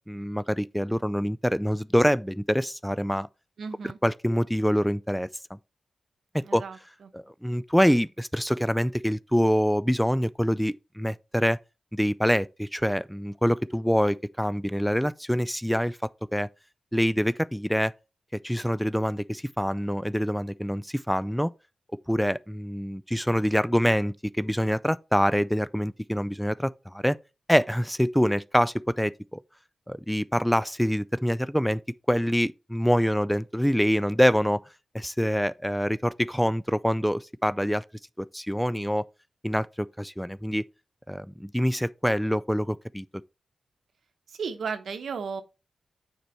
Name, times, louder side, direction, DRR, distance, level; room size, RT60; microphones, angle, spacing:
voice 1, 0.1-3.3 4.0-5.3 6.5-6.6 7.1-11.6 11.9-16.0 16.3-16.5 16.9-17.9 18.4-21.5 22.1-27.2 27.5-29.4 29.9-31.8 32.1-34.6 34.9-37.8 38.2-39.1 39.4-40.6 41.1-43.1, equal, ahead, 0.3 m, -25 dB
voice 2, 3.6-4.0 6.4-7.1 44.3-45.4, right 5 dB, 80° right, 0.8 m, -35 dB
6.7 x 4.5 x 4.3 m
cardioid pair, 50°, 0 cm